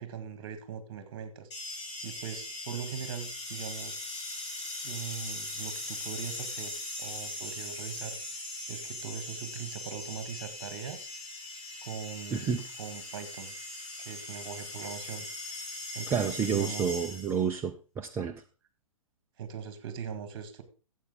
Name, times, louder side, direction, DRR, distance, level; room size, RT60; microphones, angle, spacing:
voice 1, 0.0-1.5 2.0-4.0 4.8-8.4 8.7-11.1 11.8-13.5 14.0-15.6 15.9-16.9 19.4-20.6, right 7 dB, 45° right, 10 dB, 1.8 m, -41 dB
sound 1, 1.5-17.5, left 2 dB, 55° left, 5.9 m, -40 dB
voice 2, 12.3-12.6 16.1-18.3, right 7 dB, 15° right, 4 dB, 0.6 m, -30 dB
13.0 x 8.0 x 3.7 m, 0.34 s
figure-of-eight pair, 115°, 18 cm